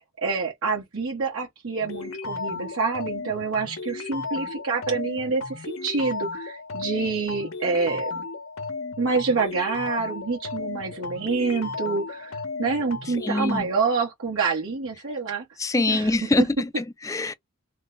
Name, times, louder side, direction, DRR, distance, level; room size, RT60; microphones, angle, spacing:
voice 1, 0.0-8.1 9.0-15.4 15.7-16.4, right 4 dB, 80° right, 1.2 m, -27 dB
sound 1, 1.8-13.6, left 3 dB, 85° left, 0.9 m, -34 dB
voice 2, 13.2-13.7 15.6-17.3, left 2 dB, 15° left, 0.3 m, -24 dB
3.1 x 2.2 x 3.9 m
head